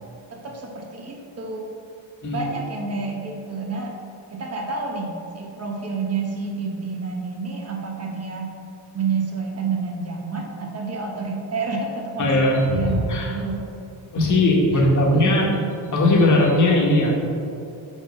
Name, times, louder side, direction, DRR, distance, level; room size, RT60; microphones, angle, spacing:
voice 1, 0.3-1.7 2.3-3.9 4.3-8.5 8.9-13.7 15.0-15.7, right 4 dB, 35° right, 1 dB, 1.2 m, -29 dB
voice 2, 12.2-13.4 14.1-15.5 15.9-17.1, left 1 dB, 40° left, -2 dB, 1.6 m, -18 dB
5.6 x 5.2 x 5.4 m, 2.6 s
cardioid pair, 110°, 45 cm